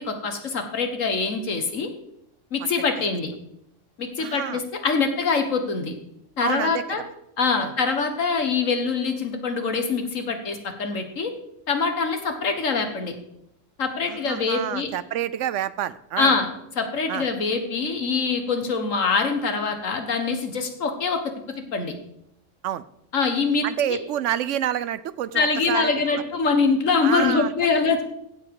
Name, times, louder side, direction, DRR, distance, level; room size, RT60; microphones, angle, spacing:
voice 1, 0.0-1.9 2.5-3.3 4.0-5.9 6.4-7.0 7.4-11.3 11.7-13.1 13.8-14.9 16.2-16.5 16.8-21.2 21.7-21.9 23.1-23.6 23.9-24.0 25.3-28.0, left 4 dB, 90° left, 6 dB, 1.9 m, -24 dB
voice 2, 4.2-4.6 6.4-7.0 7.6-7.7 14.1-16.4 17.1-17.3 22.6-22.8 23.6-26.2 27.0-27.5, right 11 dB, 75° right, 16 dB, 0.9 m, -28 dB
16.0 x 7.2 x 4.8 m, 0.77 s
omnidirectional pair, 1.3 m